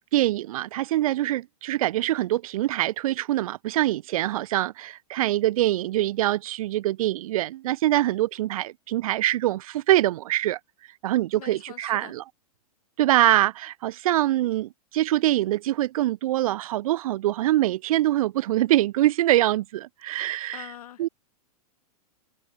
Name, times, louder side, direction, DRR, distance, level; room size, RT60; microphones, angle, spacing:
voice 1, 0.1-10.6 11.0-12.2 13.0-20.6 21.0-21.1, right 14 dB, 65° right, 1.3 m, -24 dB
voice 2, 11.3-12.1 20.5-21.1, left 12 dB, 70° left, 4.3 m, -43 dB
hypercardioid pair, 125°, 20 cm